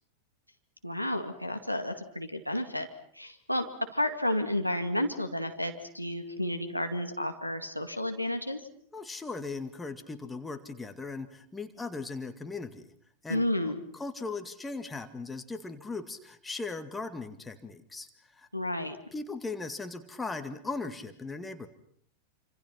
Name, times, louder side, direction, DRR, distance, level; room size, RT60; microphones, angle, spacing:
voice 1, 0.8-2.9 3.1-8.6 13.3-13.8 18.5-19.0, left 1 dB, 90° left, 5 dB, 2.3 m, -31 dB
voice 2, 8.9-12.9 13.2-18.1 18.3-18.5 19.1-21.7, left 3 dB, 10° left, 8 dB, 2.1 m, -38 dB
28.0 x 26.5 x 5.9 m, 0.64 s
figure-of-eight pair, 90°, 0 cm